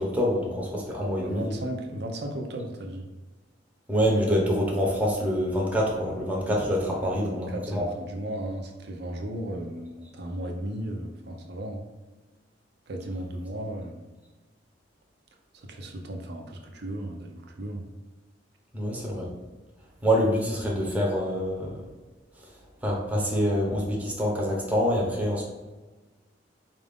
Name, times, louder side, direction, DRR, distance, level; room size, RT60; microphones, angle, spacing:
voice 1, 0.0-1.5 3.9-7.8 18.7-19.3 20.0-21.8 22.8-25.4, equal, 10° right, -3 dB, 0.8 m, -26 dB
voice 2, 1.2-3.1 7.0-11.8 12.9-14.0 15.5-17.8, right 1 dB, 65° right, 2 dB, 0.6 m, -35 dB
4.6 x 2.5 x 3.5 m, 1.3 s
head